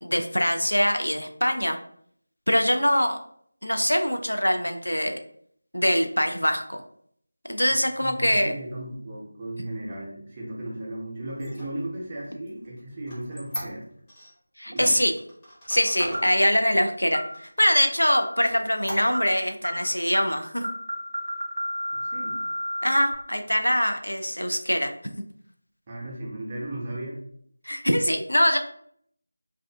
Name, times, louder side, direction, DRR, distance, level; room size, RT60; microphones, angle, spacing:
voice 1, 0.0-1.8 2.5-3.2 3.6-5.2 5.7-6.8 7.5-8.5 14.6-15.1 15.7-20.7 22.8-24.9 27.7-28.6, equal, 90° left, 5 dB, 0.3 m, -23 dB
voice 2, 8.0-13.9 14.7-15.0 22.0-22.4 25.9-27.2, right 1 dB, 25° right, -4 dB, 0.6 m, -36 dB
Squeak, 11.3-14.3 14.8-16.3 16.8-16.9 17.3-18.0 18.4-19.4, equal, 15° left, 0.6 m, -39 dB
sound 1, 16.1-16.4 17.1-17.3 18.1-18.4 19.1-19.3 19.6-19.8 20.1-20.3 20.6-23.1, equal, 70° right, 0.4 m, -31 dB
2.3 x 2.3 x 2.2 m, 0.66 s
figure-of-eight pair, 165°, 0 cm